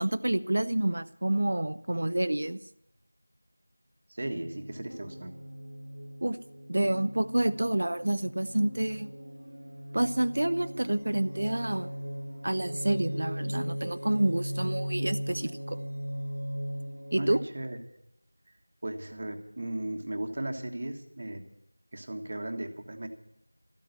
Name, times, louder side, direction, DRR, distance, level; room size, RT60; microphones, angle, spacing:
voice 1, 0.0-2.6 6.2-6.4 6.7-9.1 9.9-11.9 12.4-15.8 17.1-17.4, right 1 dB, 45° right, 13 dB, 0.6 m, -28 dB
voice 2, 4.1-5.3 17.2-17.8 18.8-21.4 21.9-23.1, right 1 dB, 30° right, 5 dB, 1.4 m, -36 dB
sound 1, 4.3-17.5, equal, 70° right, 0.9 m, -38 dB
14.0 x 8.6 x 9.8 m, 0.77 s
figure-of-eight pair, 175°, 0 cm